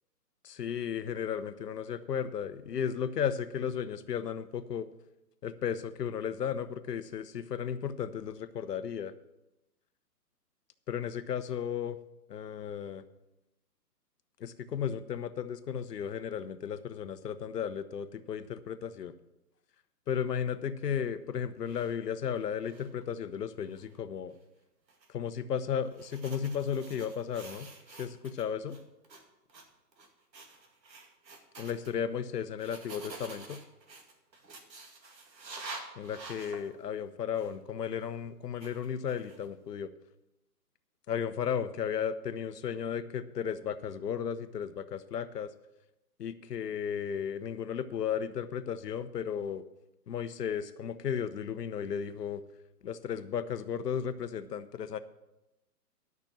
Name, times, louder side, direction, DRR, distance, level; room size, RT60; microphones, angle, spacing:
voice 1, 0.4-4.9 5.4-9.1 10.9-12.0 12.3-13.0 14.4-19.1 20.1-24.4 25.1-28.8 31.6-33.6 36.0-39.9 41.1-45.5 46.2-49.6 50.1-52.4 52.8-55.0, left 8 dB, 70° left, 12 dB, 1.0 m, -34 dB
sound 1, 21.6-22.0 22.4-23.0 23.7-23.9 24.9-25.1 25.9-28.4 28.7-29.2 29.5-29.6 29.9-30.1 30.3-31.9 32.6-36.7 37.3-37.5 38.6-39.5, right 3 dB, 90° right, 2.4 m, -48 dB
12.0 x 6.1 x 7.4 m, 0.93 s
hypercardioid pair, 160°, 49 cm